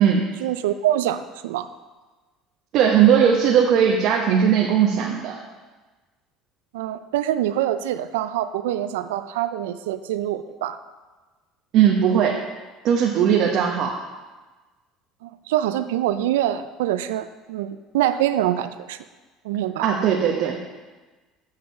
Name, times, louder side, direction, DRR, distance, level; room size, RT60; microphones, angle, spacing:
voice 1, 0.4-1.7 6.7-10.8 15.2-19.0 19.4-19.9, right 12 dB, 85° right, 12 dB, 0.3 m, -25 dB
voice 2, 2.7-5.3 11.7-12.4 12.8-13.9 19.8-20.6, right 8 dB, 60° right, 0 dB, 0.9 m, -18 dB
7.5 x 6.7 x 4.3 m, 1.3 s
supercardioid pair, 85°, 0 cm